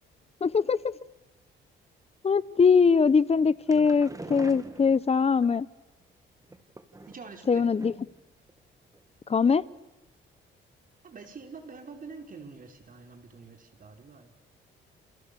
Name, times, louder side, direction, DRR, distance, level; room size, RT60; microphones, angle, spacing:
voice 1, 0.4-0.9 2.2-5.7 7.5-7.9 9.3-9.6, left 5 dB, 30° left, 18 dB, 1.0 m, -22 dB
sound 1, 3.4-5.5 6.4-7.4 7.8-8.2 8.5-8.6 8.9-9.0, right 2 dB, 15° right, 2.3 m, -44 dB
voice 2, 7.1-7.9 11.0-14.3, right 4 dB, 45° right, 5 dB, 4.9 m, -46 dB
29.0 x 28.5 x 7.0 m, 1.0 s
cardioid pair, 90°, 20 cm